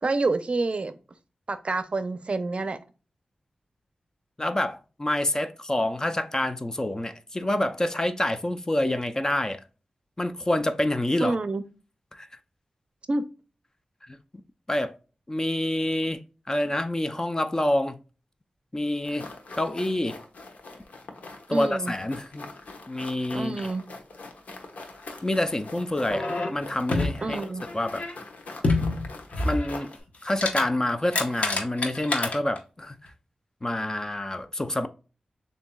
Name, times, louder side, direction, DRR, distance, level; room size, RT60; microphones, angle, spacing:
voice 1, 0.0-0.9 1.5-2.8 11.2-11.6 13.1-13.2 21.5-21.9 23.3-23.8 27.2-27.6, right 3 dB, 50° right, 0.5 m, -27 dB
voice 2, 4.4-9.6 10.2-11.3 12.1-12.3 14.7-15.0 15.3-16.2 16.5-18.0 18.7-19.3 19.6-20.2 21.5-22.5 22.9-23.7 25.2-27.4 27.7-28.0 29.4-29.9 30.2-33.1 33.6-34.9, left 1 dB, 25° left, 0.5 m, -27 dB
sound 1, 19.0-30.0, left 3 dB, 85° left, 0.9 m, -43 dB
sound 2, 26.1-27.3 27.7-28.1 28.6-29.9 30.2-30.6 30.9-32.6 33.1-33.2, left 2 dB, 60° left, 1.0 m, -27 dB
6.8 x 2.7 x 2.3 m
wide cardioid pair, 75°, 3 cm